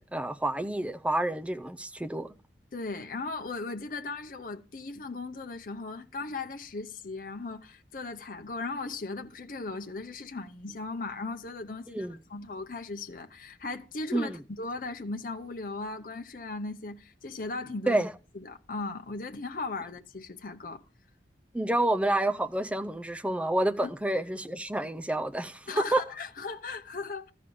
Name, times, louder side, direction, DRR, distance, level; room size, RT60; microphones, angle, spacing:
voice 1, 0.0-2.3 11.9-12.2 14.1-14.4 17.9-18.1 21.5-26.0, right 1 dB, 5° right, 0.5 m, -29 dB
voice 2, 2.7-18.0 18.3-20.8 23.8-23.9 25.7-27.3, left 3 dB, 50° left, 0.7 m, -37 dB
13.5 x 5.0 x 6.9 m
head